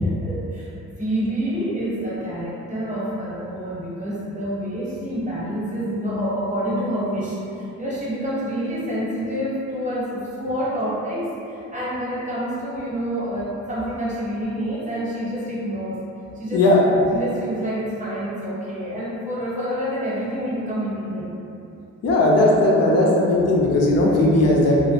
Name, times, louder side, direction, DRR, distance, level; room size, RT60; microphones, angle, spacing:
voice 1, 0.0-0.7 1.0-16.0 16.3-16.7 17.1-21.3, equal, 25° right, -7 dB, 0.8 m, -27 dB
voice 2, 16.5-17.0 22.0-24.9, left 1 dB, 55° left, -3 dB, 0.5 m, -17 dB
2.1 x 2.1 x 3.0 m, 2.8 s
cardioid pair, 90°, 30 cm